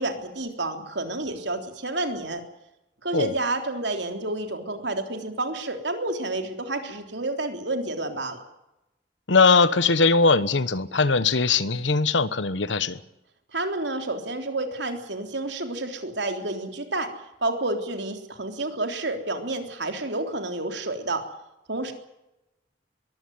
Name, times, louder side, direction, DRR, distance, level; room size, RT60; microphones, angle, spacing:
voice 1, 0.0-2.4 3.0-8.4 13.5-17.1 17.4-21.2 21.7-21.9, right 2 dB, 70° right, 5 dB, 3.6 m, -29 dB
voice 2, 9.3-13.0, left 4 dB, 80° left, 15 dB, 1.2 m, -20 dB
22.5 x 15.5 x 9.4 m, 0.92 s
head